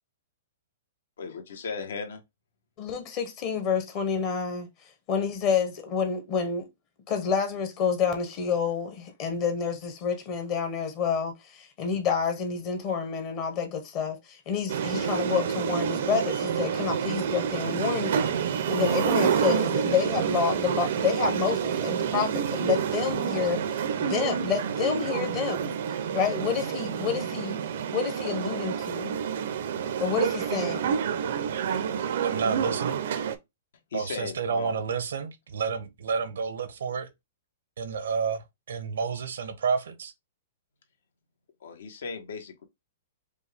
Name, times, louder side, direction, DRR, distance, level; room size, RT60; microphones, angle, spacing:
voice 1, 1.2-2.2 33.9-34.8 41.6-42.6, left 5 dB, 75° left, 1.1 m, -37 dB
voice 2, 2.8-4.7 5.1-6.7 7.1-18.3 18.7-23.6 24.0-25.8 26.1-27.6 27.9-29.2 30.0-31.0, left 6 dB, 30° left, 0.8 m, -28 dB
sound 1, 14.7-33.3, right 7 dB, 60° right, 0.6 m, -28 dB
voice 3, 32.2-33.0 33.9-37.1 37.8-40.1, right 5 dB, 80° right, 0.9 m, -30 dB
5.3 x 2.3 x 3.4 m
hypercardioid pair, 165°, 0 cm